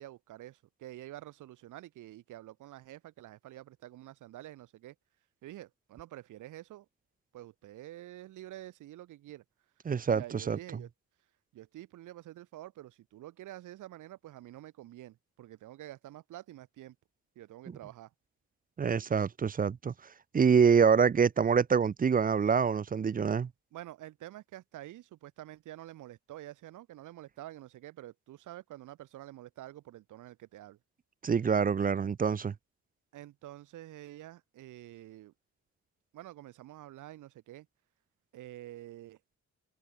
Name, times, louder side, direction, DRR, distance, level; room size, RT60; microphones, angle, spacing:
voice 1, 0.0-5.0 5.4-6.9 7.3-9.4 10.1-10.9 11.5-17.0 17.4-18.1 23.7-30.8 33.1-35.3 36.1-37.7 38.3-39.4, right 14 dB, 80° right, 2.3 m, -48 dB
voice 2, 9.9-10.6 18.8-19.9 20.3-23.5 31.2-32.5, right 6 dB, 30° right, 0.6 m, -26 dB
cardioid pair, 90°, 30 cm